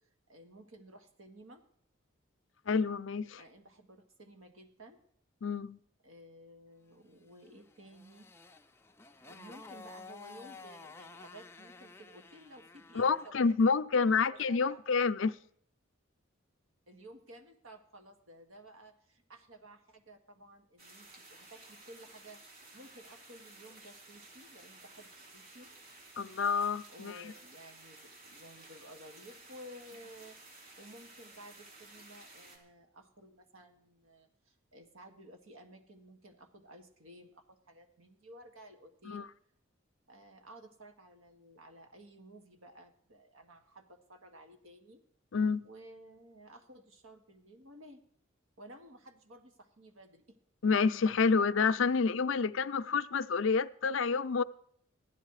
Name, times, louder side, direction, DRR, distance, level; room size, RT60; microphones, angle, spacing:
voice 1, 0.0-1.6 3.4-5.0 6.0-8.3 9.2-13.5 13.9-15.0 16.9-25.7 26.9-39.3 40.1-45.0 45.6-48.0 48.6-50.4, right 1 dB, 80° right, 1.7 m, -54 dB
voice 2, 2.7-3.4 5.4-5.8 12.9-15.3 26.2-27.3 39.1-39.2 45.3-45.7 50.6-54.4, left 5 dB, 70° left, 0.5 m, -28 dB
Motorcycle, 7.4-13.4, left 4 dB, 10° left, 0.4 m, -52 dB
sound 1, 20.8-32.6, right 2 dB, 45° right, 3.2 m, -55 dB
15.0 x 11.0 x 4.8 m
head